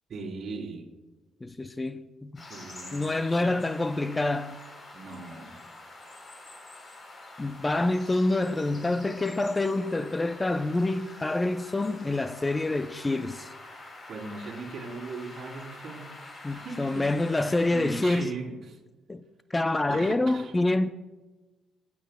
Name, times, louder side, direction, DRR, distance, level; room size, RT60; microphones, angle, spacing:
voice 1, 0.1-0.9 2.5-3.1 3.4-3.6 4.9-5.5 14.1-17.1 17.7-18.8 19.9-20.5, right 3 dB, 55° right, 3.3 m, -39 dB
voice 2, 1.4-2.4 2.9-4.6 7.4-13.5 16.4-18.3 19.1-19.2 19.5-20.9, left 2 dB, 20° left, 0.4 m, -27 dB
sound 1, 2.4-18.2, left 2 dB, 35° left, 3.4 m, -46 dB
24.5 x 8.4 x 2.2 m
cardioid pair, 90°, 0 cm